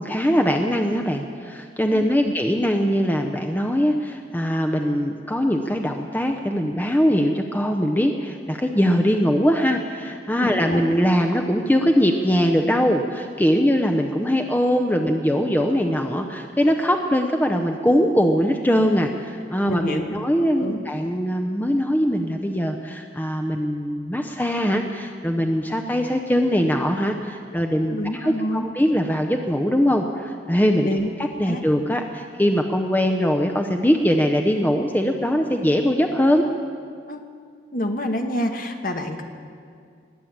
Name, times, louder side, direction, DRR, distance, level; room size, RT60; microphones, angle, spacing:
voice 1, 0.0-31.0 31.4-36.4, equal, 10° left, 4 dB, 0.6 m, -21 dB
voice 2, 1.9-2.3 10.4-10.8 19.7-20.0 20.6-20.8 27.9-28.7 30.8-31.1 31.5-31.6 37.1-37.2 37.7-39.2, left 1 dB, 50° left, 5 dB, 1.2 m, -27 dB
21.0 x 7.4 x 8.7 m, 2.2 s
head